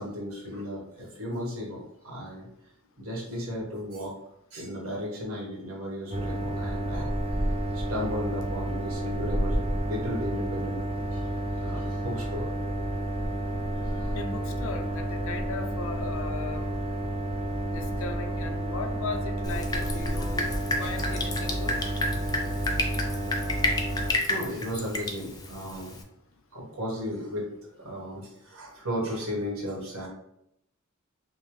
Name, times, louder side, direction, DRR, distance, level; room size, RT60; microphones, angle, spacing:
voice 1, 0.0-2.5 3.0-4.1 4.5-7.1 7.7-10.8 11.1-12.5 13.8-14.2 20.8-20.9 21.8-21.9 23.9-25.9 26.5-30.1, equal, 75° right, -3 dB, 1.4 m, -35 dB
sound 1, 6.1-24.1, right 1 dB, 30° right, 0.6 m, -30 dB
voice 2, 14.1-16.7 17.7-20.5 20.8-21.8, left 4 dB, 65° left, 6 dB, 0.5 m, -37 dB
Drip, 19.4-26.0, left 2 dB, 20° left, 0.5 m, -31 dB
5.3 x 2.0 x 3.1 m, 0.79 s
head